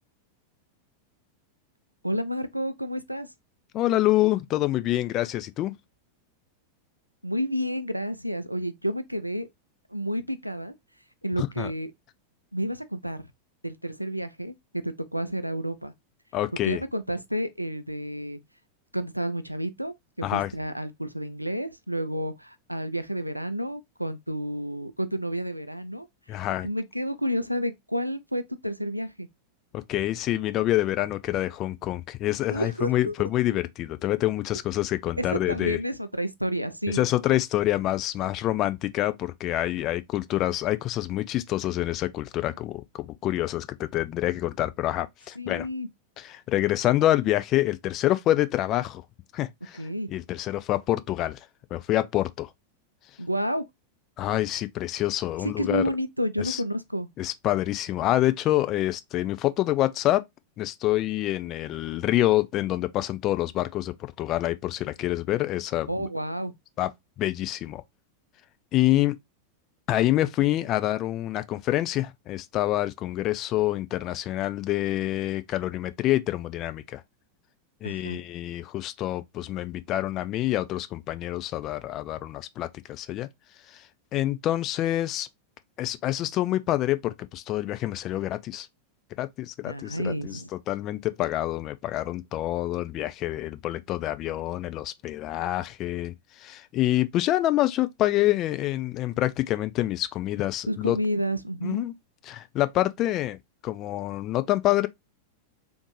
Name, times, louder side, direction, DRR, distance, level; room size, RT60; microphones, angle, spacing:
voice 1, 2.0-3.3 7.2-9.5 9.9-10.7 11.2-11.9 12.5-13.3 13.6-15.9 16.6-18.4 18.9-26.1 26.6-29.3 32.5-33.1 35.2-37.1 45.4-45.9 49.8-50.2 53.2-53.6 55.4-57.1 65.9-66.5 77.8-78.2 89.6-90.5 100.7-101.9, equal, 90° right, 0.3 m, -30 dB
voice 2, 3.7-5.7 11.4-11.7 16.3-16.8 20.2-20.5 26.3-26.7 29.7-35.8 36.9-45.7 46.2-49.0 49.3-49.8 50.1-51.4 51.7-52.5 54.2-55.8 56.4-56.6 57.2-60.2 60.6-66.1 66.8-66.9 67.2-67.8 68.7-69.2 69.9-77.0 77.8-83.3 83.7-83.8 84.1-85.3 85.8-88.7 89.2-90.4 90.7-101.0 101.6-101.9 102.2-104.9, left 14 dB, 35° left, 0.3 m, -27 dB
3.5 x 2.5 x 3.1 m
figure-of-eight pair, 90°, 0 cm